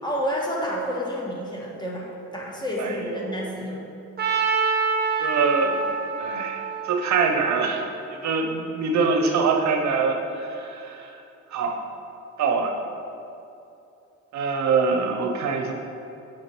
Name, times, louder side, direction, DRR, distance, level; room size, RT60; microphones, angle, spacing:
voice 1, 0.0-3.8, equal, 15° left, -3 dB, 1.3 m, -29 dB
voice 2, 2.8-3.4 5.2-5.9 6.2-7.8 8.1-11.2 11.5-11.8 12.4-12.7 14.3-15.7, right 4 dB, 65° right, 3 dB, 0.7 m, -24 dB
Trumpet, 4.2-8.2, right 5 dB, 30° right, 0.9 m, -27 dB
6.2 x 4.6 x 4.5 m, 2.7 s
cardioid pair, 90°, 30 cm